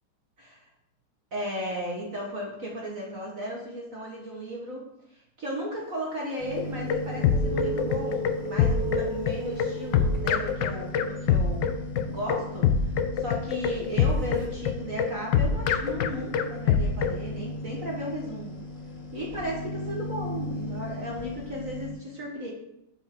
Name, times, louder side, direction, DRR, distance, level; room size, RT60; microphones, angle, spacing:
voice 1, 1.3-4.9 5.1-11.7 12.1-18.6 19.1-22.5, equal, 45° right, -3 dB, 1.6 m, -35 dB
sound 1, 6.4-21.9, left 1 dB, 40° left, 2.0 m, -38 dB
sound 2, 6.4-11.1 14.3-14.5, right 3 dB, 80° right, 2.5 m, -35 dB
sound 3, 6.6-17.2, left 7 dB, 70° left, 1.2 m, -24 dB
12.5 x 5.7 x 3.7 m, 0.84 s
omnidirectional pair, 2.3 m